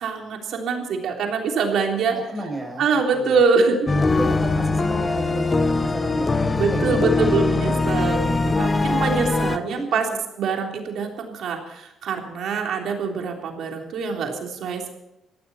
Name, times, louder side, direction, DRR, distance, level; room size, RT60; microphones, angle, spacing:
voice 1, 0.0-2.1 2.8-3.7 6.5-10.1 10.4-11.6 12.0-14.3 14.6-14.9, right 5 dB, 75° right, 2 dB, 3.5 m, -24 dB
voice 2, 2.1-2.9 3.1-3.4 4.0-7.6 8.7-9.0 9.6-10.2 12.6-12.8, right 1 dB, 10° right, 1 dB, 7.5 m, -33 dB
sound 1, 3.9-9.6, left 3 dB, 25° left, 1.0 m, -22 dB
19.0 x 15.0 x 4.3 m, 0.89 s
cardioid pair, 90°, 0 cm